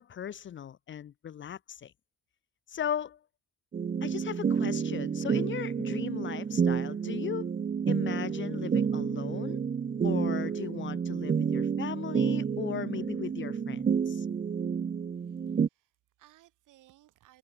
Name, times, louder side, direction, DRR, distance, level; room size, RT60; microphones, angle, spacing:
voice 1, 0.0-1.9 2.7-3.2 4.0-7.6 7.9-9.6 10.0-14.3, left 9 dB, 40° left, 0.5 m, -37 dB
sound 1, 3.7-15.7, right 6 dB, 30° right, 0.6 m, -30 dB
voice 2, 15.1-17.4, right 15 dB, 90° right, 7.0 m, -62 dB
cardioid pair, 90°, 30 cm